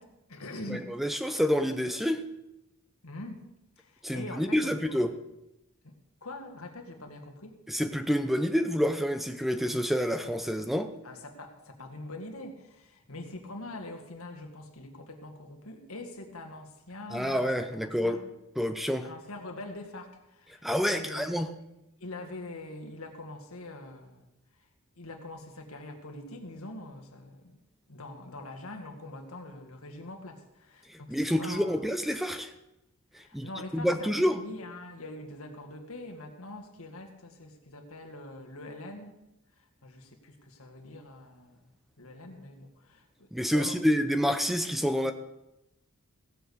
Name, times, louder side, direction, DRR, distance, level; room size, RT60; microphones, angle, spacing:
voice 1, 0.0-1.0 3.0-3.4 3.8-5.1 5.8-5.9 6.2-7.6 11.0-17.5 18.0-18.2 19.0-21.3 22.0-24.3 25.0-27.6 27.9-31.9 33.2-39.1 39.6-41.7 42.0-43.8, left 2 dB, 70° left, 5 dB, 1.9 m, -44 dB
voice 2, 0.7-2.2 4.0-5.1 7.7-10.9 17.1-18.2 18.6-19.1 20.6-21.5 30.9-32.5 33.1-34.4 43.3-45.1, equal, ahead, 8 dB, 0.6 m, -28 dB
16.0 x 7.8 x 6.7 m, 0.90 s
head